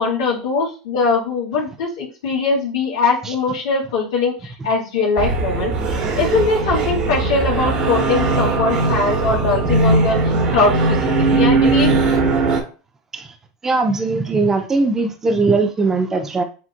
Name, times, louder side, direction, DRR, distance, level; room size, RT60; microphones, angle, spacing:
voice 1, 0.0-5.7 6.2-10.2 10.5-11.9, left 4 dB, 80° left, -3 dB, 2.1 m, -21 dB
sound 1, 5.2-12.6, right 3 dB, 45° right, 1.3 m, -19 dB
voice 2, 13.6-16.4, right 3 dB, 20° right, 5 dB, 0.6 m, -19 dB
7.4 x 2.5 x 2.2 m, 0.35 s
hypercardioid pair, 110°, 2 cm